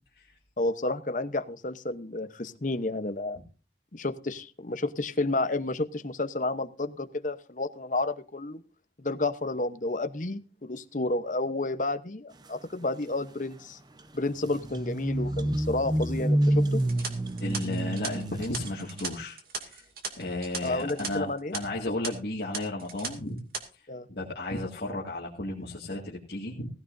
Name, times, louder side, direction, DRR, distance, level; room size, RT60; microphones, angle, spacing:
voice 1, 0.6-3.4 3.9-8.6 9.0-13.8 14.1-16.8 20.6-21.6 23.9-24.1, left 2 dB, 45° left, 10 dB, 0.9 m, -31 dB
sound 1, 14.0-14.1 14.3-19.0, right 1 dB, 25° right, 0.8 m, -28 dB
sound 2, 16.8-21.1 21.4-21.6 22.0-22.1 22.5-23.1 23.4-23.6, right 5 dB, 55° right, 2.5 m, -37 dB
voice 2, 17.4-19.4 19.6-19.8 20.2-21.3 21.5-23.4 24.1-26.7, left 2 dB, 65° left, -4 dB, 2.2 m, -33 dB
17.0 x 15.5 x 2.7 m, 0.35 s
head